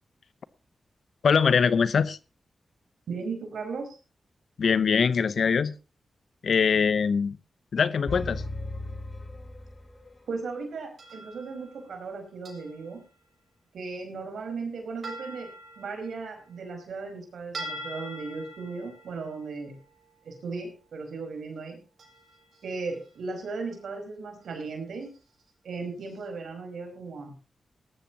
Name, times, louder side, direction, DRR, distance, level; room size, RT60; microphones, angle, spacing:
voice 1, 1.2-2.2 4.6-5.7 6.4-7.4 7.7-8.4, left 6 dB, 75° left, 15 dB, 0.8 m, -22 dB
voice 2, 3.1-4.0 10.3-13.0 13.7-19.8 20.2-21.8 22.6-25.1 25.6-27.4, right 4 dB, 90° right, 4 dB, 4.9 m, -36 dB
sound 1, 8.1-10.2, left 2 dB, 25° left, 4.5 m, -36 dB
sound 2, 11.0-12.1 12.4-13.1 15.0-17.2 17.5-20.7 22.0-23.1 23.3-23.9 24.4-24.6 25.0-25.2 26.1-26.2, right 1 dB, 65° right, 6.7 m, -44 dB
19.0 x 13.5 x 2.9 m, 0.32 s
cardioid pair, 70°, 0 cm